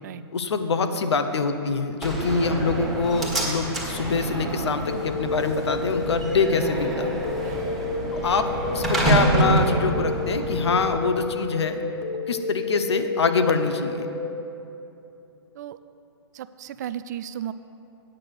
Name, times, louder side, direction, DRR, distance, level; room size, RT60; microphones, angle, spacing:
voice 1, 0.3-7.1 8.1-8.5 8.7-11.8 12.3-14.1, left 4 dB, 80° left, 8 dB, 0.9 m, -25 dB
Slam, 2.0-11.0, right 2 dB, ahead, 1.6 m, -27 dB
sound 1, 4.9-14.4, left 4 dB, 35° left, 0.9 m, -31 dB
voice 2, 16.3-17.5, right 10 dB, 40° right, 14 dB, 0.4 m, -35 dB
8.9 x 6.1 x 7.9 m, 2.7 s
hypercardioid pair, 145°, 14 cm